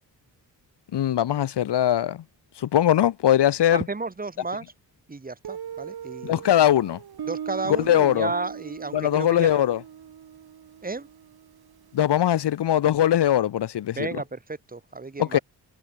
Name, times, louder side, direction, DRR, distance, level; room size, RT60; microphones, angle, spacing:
voice 1, 0.9-2.2 2.6-3.8 6.2-7.0 7.9-8.3 8.9-9.8 11.9-14.1 15.2-15.4, left 11 dB, 80° left, 1.4 m, -21 dB
voice 2, 3.7-4.6 5.1-6.4 7.3-9.6 10.8-11.1 13.9-15.4, right 3 dB, 20° right, 4.6 m, -32 dB
Guitar, 5.4-12.1, right 9 dB, 65° right, 3.8 m, -39 dB
wide cardioid pair, 175°, 41 cm